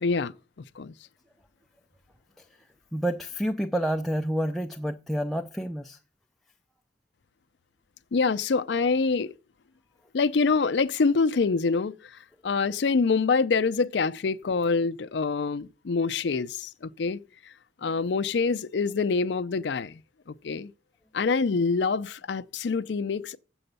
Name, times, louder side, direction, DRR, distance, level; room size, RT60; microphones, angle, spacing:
voice 1, 0.0-0.3 0.8-0.9 8.1-9.3 10.1-11.9 12.4-17.2 17.8-20.0 20.3-20.7 21.1-23.4, left 4 dB, 65° left, 0.5 m, -25 dB
voice 2, 2.9-6.0, equal, ahead, 0.4 m, -29 dB
7.7 x 7.0 x 6.6 m
head